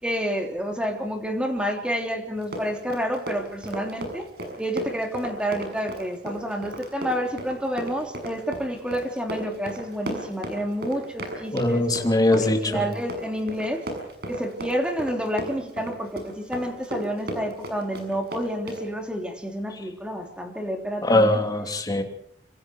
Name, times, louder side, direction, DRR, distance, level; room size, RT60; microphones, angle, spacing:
voice 1, 0.0-4.3 4.6-11.9 12.3-13.8 14.3-21.4, equal, 5° right, 3 dB, 3.3 m, -29 dB
Run, 2.4-18.9, right 1 dB, 65° right, 6.5 m, -35 dB
voice 2, 11.5-12.6 21.0-22.0, left 1 dB, 20° left, 4 dB, 3.0 m, -21 dB
27.0 x 26.5 x 4.7 m, 0.64 s
head